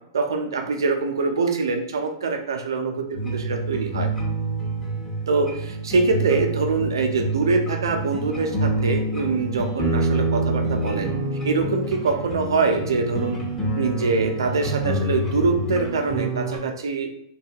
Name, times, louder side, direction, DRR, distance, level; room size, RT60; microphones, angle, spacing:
voice 1, 0.1-4.1 5.3-11.1 11.4-13.4 13.8-17.1, right 4 dB, 85° right, 4 dB, 0.5 m, -24 dB
sound 1, 3.1-16.6, right 2 dB, 20° left, 1.1 m, -27 dB
2.6 x 2.2 x 2.8 m, 0.76 s
hypercardioid pair, 115°, 2 cm